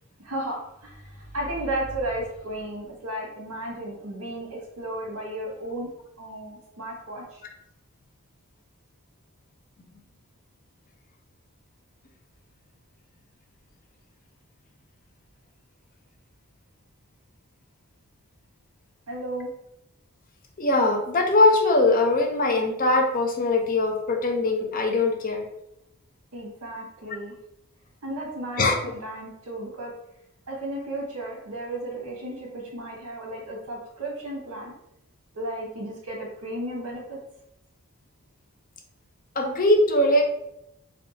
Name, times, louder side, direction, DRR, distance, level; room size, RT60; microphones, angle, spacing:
voice 1, 0.2-7.4 19.1-19.5 26.3-27.4 28.0-30.0 30.5-34.7 35.3-37.2, right 1 dB, 85° right, -2 dB, 1.4 m, -34 dB
voice 2, 20.6-25.5 28.6-28.8 39.4-40.2, left 2 dB, 40° left, 3 dB, 0.5 m, -21 dB
3.5 x 2.3 x 3.8 m, 0.83 s
head